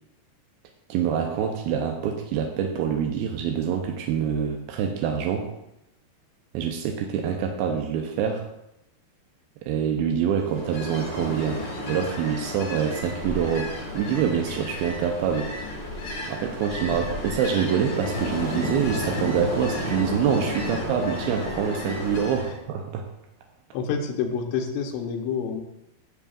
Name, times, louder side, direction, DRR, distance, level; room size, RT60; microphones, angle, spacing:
voice 1, 0.9-5.5 6.5-8.5 9.6-15.5 16.3-23.0, right 7 dB, 85° right, 3 dB, 2.2 m, -26 dB
Ocean, 10.4-22.6, left 1 dB, 55° left, 1.1 m, -32 dB
voice 2, 23.7-25.6, left 6 dB, 90° left, 2 dB, 3.2 m, -28 dB
13.0 x 7.1 x 2.4 m, 0.85 s
omnidirectional pair, 5.0 m